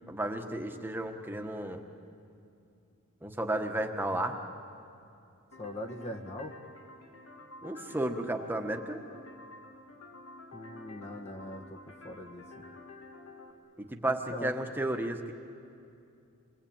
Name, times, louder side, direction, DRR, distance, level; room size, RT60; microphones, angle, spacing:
voice 1, 0.1-1.8 3.2-4.4 7.6-9.0 13.8-15.3, right 1 dB, 10° right, 4 dB, 1.4 m, -33 dB
sound 1, 5.5-13.5, left 2 dB, 70° left, 2.8 m, -50 dB
voice 2, 5.6-6.6 10.5-11.8 12.0-12.4 14.1-14.5, left 1 dB, 30° left, 4 dB, 1.5 m, -41 dB
28.5 x 21.5 x 8.8 m, 2.6 s
head